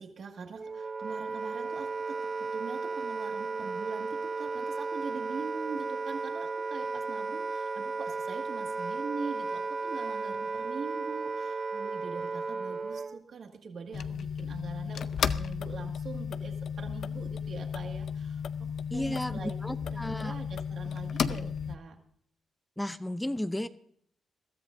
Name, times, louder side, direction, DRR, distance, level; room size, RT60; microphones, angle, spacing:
voice 1, 0.0-22.0, right 5 dB, 60° right, 4 dB, 1.9 m, -43 dB
Wind instrument woodwind instrument, 0.6-13.2, right 4 dB, 30° right, 0.7 m, -34 dB
sound 1, 13.9-21.8, left 7 dB, 65° left, 0.6 m, -34 dB
voice 2, 18.9-20.3 22.8-23.7, left 1 dB, 10° left, 12 dB, 0.6 m, -33 dB
21.5 x 13.5 x 2.6 m, 0.64 s
cardioid pair, 85°, 0 cm